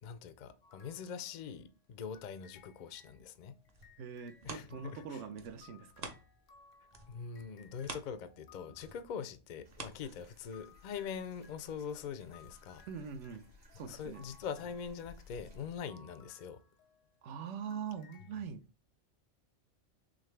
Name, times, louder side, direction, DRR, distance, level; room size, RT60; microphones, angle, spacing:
voice 1, 0.0-3.5 4.4-5.2 7.1-12.8 13.9-16.6, left 7 dB, 60° left, 0.4 m, -43 dB
sound 1, 0.6-1.7 2.1-9.1 10.1-17.3 17.7-18.3, left 5 dB, 90° left, 1.2 m, -63 dB
sound 2, 3.4-6.6 6.9-10.7 11.2-11.3, right 3 dB, 40° right, 0.7 m, -49 dB
voice 2, 4.0-6.1 12.9-13.4 13.7-14.2 17.2-18.6, right 7 dB, 75° right, 0.9 m, -43 dB
sound 3, 9.6-15.8, left 2 dB, 60° right, 1.6 m, -59 dB
3.9 x 3.1 x 3.2 m
omnidirectional pair, 1.3 m